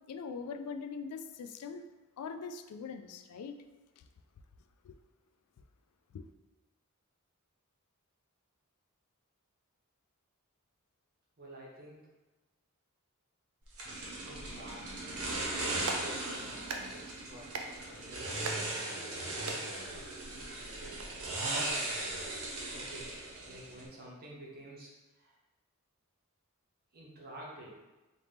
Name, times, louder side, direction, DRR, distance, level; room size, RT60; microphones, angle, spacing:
voice 1, 0.1-1.8 2.2-3.5 4.0-4.1 4.8-5.0 6.1-6.3, left 5 dB, 90° left, 9 dB, 0.3 m, -42 dB
voice 2, 11.4-12.0 14.2-15.3 15.6-17.5 17.8-21.9 22.7-25.4 26.9-27.7, right 1 dB, 45° right, -4 dB, 1.0 m, -51 dB
sound 1, 13.8-23.9, right 2 dB, 80° right, 0.9 m, -38 dB
Clapping, 15.6-21.0, right 4 dB, 65° right, 0.4 m, -44 dB
4.1 x 2.8 x 3.4 m, 1.1 s
head